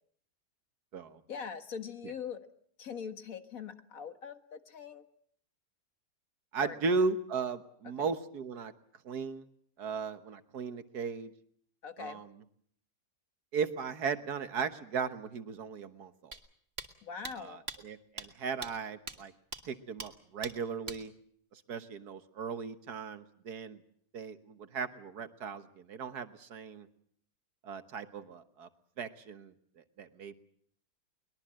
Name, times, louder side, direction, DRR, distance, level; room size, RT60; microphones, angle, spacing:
voice 1, 1.3-2.5 2.8-5.1 6.6-7.0 8.0-8.1 11.8-12.2 17.0-17.6, left 6 dB, 60° left, 8 dB, 2.0 m, -42 dB
voice 2, 6.5-8.7 9.1-9.5 9.8-11.3 12.0-12.3 13.5-16.4 17.3-19.3 19.7-21.1 21.5-23.8 24.1-26.9 27.6-28.7 29.0-29.5 30.0-30.3, right 5 dB, 75° right, 10 dB, 1.8 m, -36 dB
sound 1, 16.3-16.4 16.8-16.9 17.2-17.3 17.7-17.8 18.2-18.3 18.6-18.7 19.1-19.2 19.5-19.6 20.0-20.1 20.4-20.5 20.9-21.0, right 3 dB, 40° right, 2.1 m, -40 dB
23.0 x 21.0 x 7.6 m, 0.64 s
omnidirectional pair, 1.7 m